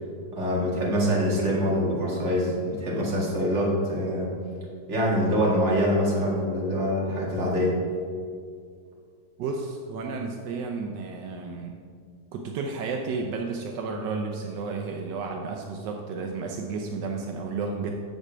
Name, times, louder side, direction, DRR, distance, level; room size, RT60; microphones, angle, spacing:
voice 1, 0.3-4.3 4.9-7.8, equal, 40° right, -4 dB, 2.2 m, -25 dB
voice 2, 9.4-11.8 12.3-17.9, right 4 dB, 80° right, 2 dB, 1.3 m, -32 dB
7.8 x 7.2 x 5.0 m, 2.1 s
omnidirectional pair, 1.9 m